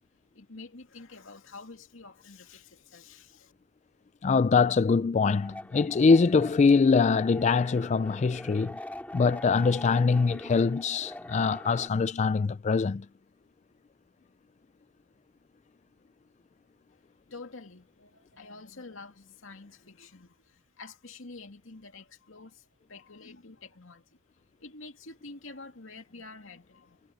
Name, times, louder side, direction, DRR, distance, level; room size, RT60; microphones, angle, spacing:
voice 1, 0.3-3.5 16.9-17.0 17.3-24.2 24.6-27.0, left 3 dB, 70° left, 2.5 m, -48 dB
voice 2, 4.2-8.8 9.1-13.1, left 4 dB, 35° left, 0.3 m, -23 dB
sound 1, 5.3-11.9, left 1 dB, 5° left, 2.9 m, -43 dB
head